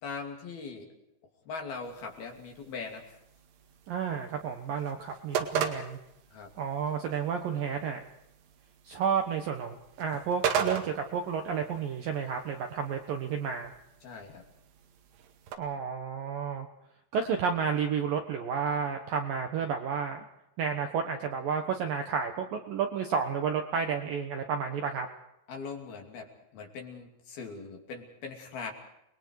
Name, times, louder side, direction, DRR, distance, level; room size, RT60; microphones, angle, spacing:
voice 1, 0.0-0.9 1.5-3.0 6.3-6.5 14.0-14.4 25.5-28.7, left 4 dB, 55° left, 2 dB, 4.4 m, -40 dB
sound 1, 1.8-15.6, right 7 dB, 85° right, 4.5 m, -38 dB
voice 2, 3.9-6.0 6.6-8.0 8.8-13.7 15.6-16.7 17.1-20.3 20.6-25.1, right 6 dB, 65° right, 4 dB, 2.4 m, -31 dB
30.0 x 21.5 x 4.8 m, 0.82 s
omnidirectional pair, 5.5 m